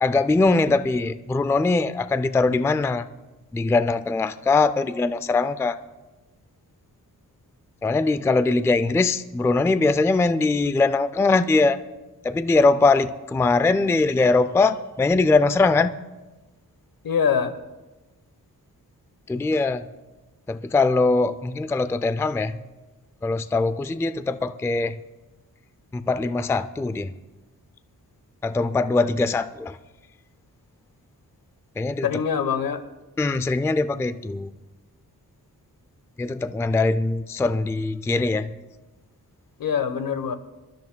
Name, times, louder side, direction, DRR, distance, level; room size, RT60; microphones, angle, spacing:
voice 1, 0.0-3.1 3.5-5.8 7.8-11.8 12.2-15.9 19.3-19.8 20.5-22.6 23.2-25.0 25.9-27.1 28.4-29.8 31.8-32.1 33.2-34.5 36.2-38.5, left 3 dB, 10° left, 12 dB, 0.3 m, -21 dB
voice 2, 17.0-17.6 32.0-32.8 39.6-40.4, left 7 dB, 75° left, 10 dB, 1.1 m, -24 dB
26.0 x 13.0 x 2.2 m, 1.1 s
wide cardioid pair, 145°, 35 cm